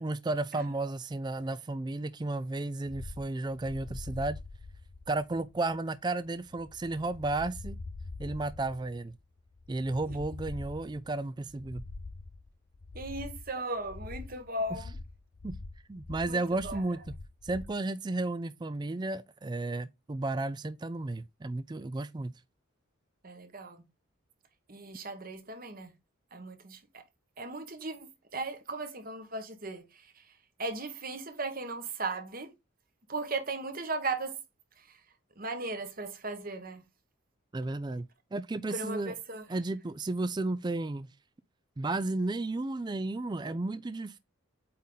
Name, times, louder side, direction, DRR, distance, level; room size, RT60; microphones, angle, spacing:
voice 1, 0.0-4.4 5.1-7.8 8.2-9.1 9.7-11.8 15.4-15.5 15.9-17.0 17.4-22.3 37.5-39.2 39.5-41.1 41.8-44.2, right 2 dB, 20° right, 0.4 m, -33 dB
sound 1, 2.9-17.8, left 3 dB, 50° left, 0.6 m, -44 dB
voice 2, 12.9-15.0 16.3-16.8 23.2-23.8 24.7-25.9 26.3-27.0 27.4-30.2 30.6-32.5 33.1-34.4 35.4-36.8 38.7-39.4, right 2 dB, 45° right, 1.3 m, -37 dB
8.5 x 3.6 x 3.9 m
head